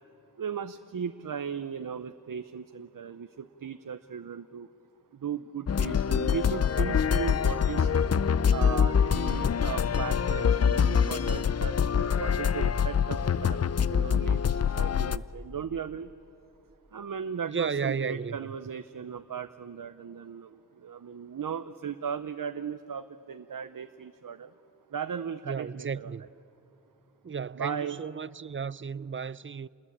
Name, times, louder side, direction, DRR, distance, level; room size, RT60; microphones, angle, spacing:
voice 1, 0.4-4.7 5.1-7.9 8.5-16.1 16.9-24.5 24.9-26.2 27.6-28.0, right 7 dB, 80° right, 0.7 m, -37 dB
sound 1, 5.7-15.2, left 7 dB, 50° left, 0.5 m, -25 dB
voice 2, 17.5-18.6 25.4-26.2 27.2-29.7, right 6 dB, 40° right, 0.5 m, -34 dB
28.0 x 20.5 x 8.6 m
wide cardioid pair, 55°, 32 cm